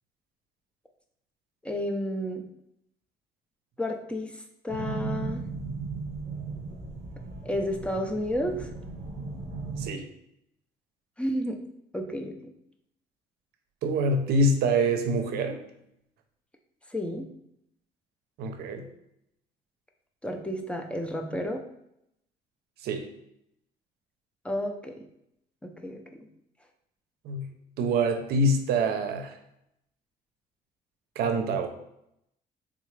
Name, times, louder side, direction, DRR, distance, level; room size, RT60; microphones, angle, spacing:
voice 1, 1.6-2.5 3.8-5.4 7.4-8.7 11.2-11.6 11.9-12.4 16.9-17.2 20.2-21.6 24.4-25.0 25.8-26.3, equal, 5° left, 3 dB, 0.5 m, -31 dB
sound 1, 4.7-9.9, right 4 dB, 40° right, 0.9 m, -36 dB
voice 2, 13.8-15.6 18.4-18.8 22.8-23.1 27.2-27.5 27.8-29.4 31.2-31.7, right 1 dB, 70° right, 6 dB, 0.5 m, -25 dB
3.7 x 2.3 x 3.1 m, 0.78 s
cardioid pair, 110°, 17 cm